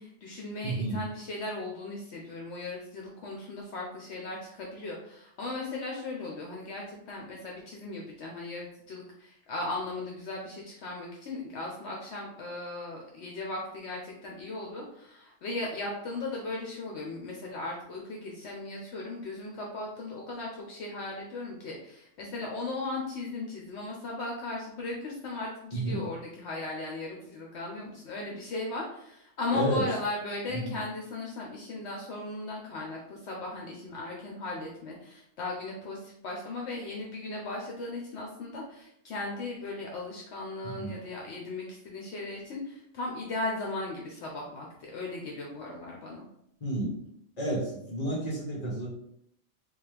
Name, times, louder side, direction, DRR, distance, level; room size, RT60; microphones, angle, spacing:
voice 1, 0.0-46.3, left 2 dB, 70° left, -1 dB, 0.9 m, -37 dB
voice 2, 0.6-1.0 25.7-26.1 29.5-29.8 30.5-30.8 40.8-40.9 46.6-46.9 47.4-48.9, right 1 dB, 35° left, -3 dB, 1.2 m, -31 dB
4.1 x 2.3 x 3.3 m, 0.74 s
omnidirectional pair, 1.2 m